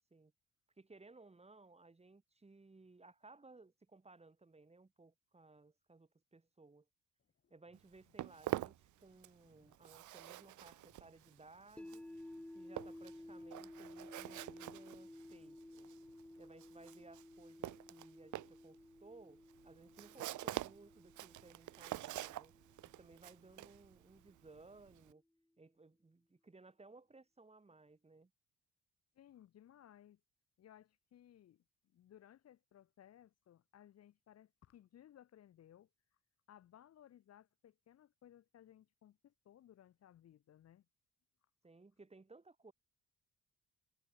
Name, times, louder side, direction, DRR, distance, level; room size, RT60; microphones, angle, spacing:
voice 1, 0.8-6.9 7.5-12.0 12.5-15.9 16.4-22.5 23.0-25.2 25.6-28.3 41.6-42.7, right 3 dB, 20° right, 5.6 m, -61 dB
sound 1, 7.2-16.4, left 6 dB, 40° left, 3.3 m, -76 dB
Walk footsteps, 7.7-9.5 9.7-25.1, right 15 dB, 75° right, 1.0 m, -46 dB
sound 2, 11.8-23.9, left 1 dB, 5° left, 0.4 m, -55 dB
voice 2, 29.1-30.2 30.6-31.6 31.9-35.9 36.5-40.8, left 11 dB, 55° left, 0.9 m, -62 dB
cardioid pair, 90°, 30 cm